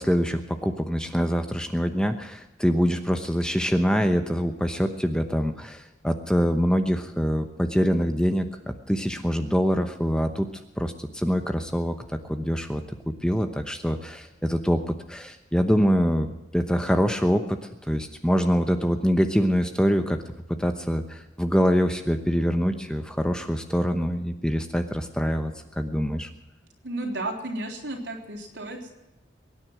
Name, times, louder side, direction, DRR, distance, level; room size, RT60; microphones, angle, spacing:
voice 1, 0.0-10.5 10.8-12.8 13.2-17.6 17.9-20.2 20.6-26.3, equal, 5° left, 7 dB, 0.9 m, -24 dB
voice 2, 26.8-28.9, right 2 dB, 80° right, 2 dB, 3.8 m, -33 dB
23.0 x 9.8 x 6.1 m, 0.97 s
head